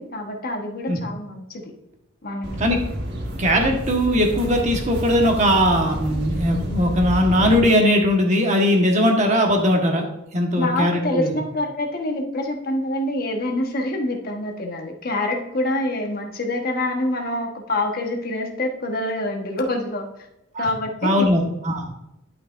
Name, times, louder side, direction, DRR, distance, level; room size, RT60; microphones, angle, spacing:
voice 1, 0.0-1.7 2.2-2.5 10.6-20.3 20.6-21.3, left 1 dB, 45° left, 2 dB, 1.2 m, -26 dB
sound 1, 2.4-7.6, equal, 55° right, 1.4 m, -29 dB
voice 2, 3.4-10.1 10.3-11.3 20.5-20.7 21.0-21.8, equal, 35° right, 2 dB, 1.3 m, -19 dB
11.5 x 5.9 x 2.5 m, 0.87 s
head